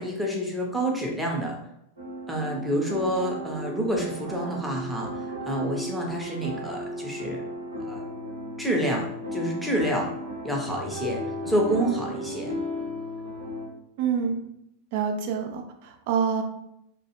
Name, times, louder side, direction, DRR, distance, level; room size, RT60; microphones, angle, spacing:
voice 1, 0.0-1.5 2.3-7.4 7.8-8.0 8.6-9.1 9.3-10.1 10.4-11.2 11.5-12.5, equal, ahead, -2 dB, 0.6 m, -28 dB
sound 1, 2.0-13.7, equal, 75° right, 0.9 m, -35 dB
voice 2, 14.0-14.4 14.9-16.4, right 6 dB, 50° right, 4 dB, 0.4 m, -27 dB
2.3 x 2.3 x 2.9 m, 0.78 s
figure-of-eight pair, 90°, 0 cm